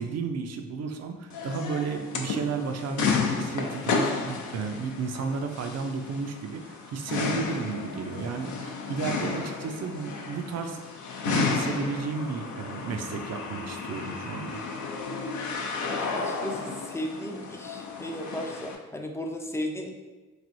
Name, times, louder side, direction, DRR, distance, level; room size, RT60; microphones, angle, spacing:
voice 1, 0.0-10.8 11.3-14.6, right 5 dB, 50° right, 5 dB, 0.5 m, -33 dB
sound 1, 1.3-18.8, left 4 dB, 60° left, 0.5 m, -32 dB
voice 2, 15.9-16.6 16.9-19.9, left 1 dB, 10° left, 3 dB, 0.4 m, -35 dB
3.2 x 2.5 x 2.6 m, 1.2 s
supercardioid pair, 50°, 34 cm